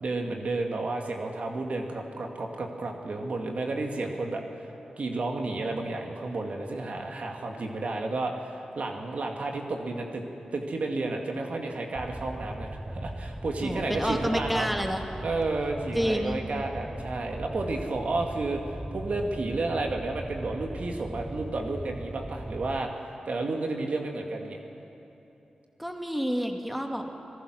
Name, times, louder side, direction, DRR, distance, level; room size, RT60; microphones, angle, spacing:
voice 1, 0.0-4.4 5.0-10.2 10.5-14.7 15.2-22.9 23.3-24.6, right 2 dB, 65° right, 2 dB, 2.1 m, -31 dB
Fire, 11.9-22.8, right 1 dB, 20° right, 1.0 m, -39 dB
voice 2, 13.6-15.0 15.9-16.4 25.8-27.1, equal, 5° right, 4 dB, 2.0 m, -29 dB
25.5 x 17.0 x 6.3 m, 3.0 s
cardioid pair, 40°, 2 cm